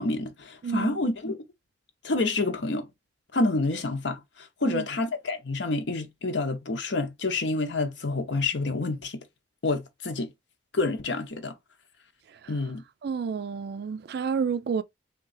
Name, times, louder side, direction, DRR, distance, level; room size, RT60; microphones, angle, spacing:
voice 1, 0.0-1.4 2.0-2.9 3.3-9.2 9.6-10.3 10.7-11.5 12.5-12.8, left 2 dB, 70° left, 0.8 m, -28 dB
voice 2, 0.6-1.0 4.6-4.9 13.0-14.8, right 6 dB, 55° right, 0.3 m, -30 dB
3.7 x 2.4 x 3.9 m
head